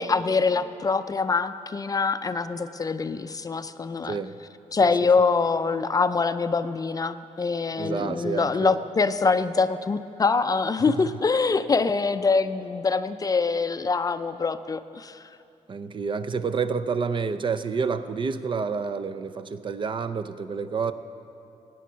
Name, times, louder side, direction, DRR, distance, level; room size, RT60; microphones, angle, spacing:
voice 1, 0.0-4.2 4.7-15.2, left 4 dB, 30° left, 11 dB, 0.4 m, -24 dB
voice 2, 4.0-4.4 4.8-4.9 5.2-5.3 7.8-8.8 15.7-20.9, right 5 dB, 40° right, 10 dB, 0.5 m, -29 dB
17.5 x 9.3 x 5.7 m, 2.7 s
cardioid pair, 110°, 13 cm